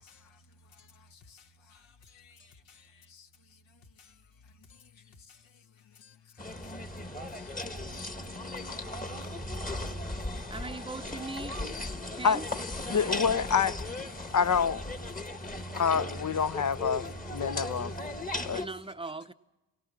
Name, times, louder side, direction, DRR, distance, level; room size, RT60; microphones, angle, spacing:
voice 1, 0.8-3.3 4.0-4.1 5.1-5.4 6.0-6.1 6.6-6.8 7.3-7.5 7.9-8.4 8.7-10.1 15.3-15.6 18.4-18.5, left 5 dB, 65° left, 1.5 m, -57 dB
sound 1, 6.4-18.7, left 1 dB, 15° left, 1.4 m, -37 dB
voice 2, 10.5-11.6 12.1-12.5 18.5-19.3, right 2 dB, 10° right, 0.9 m, -39 dB
voice 3, 12.9-14.8 15.7-18.0 18.5-18.6, left 6 dB, 35° left, 0.7 m, -27 dB
24.0 x 17.5 x 7.4 m
supercardioid pair, 50°, 49 cm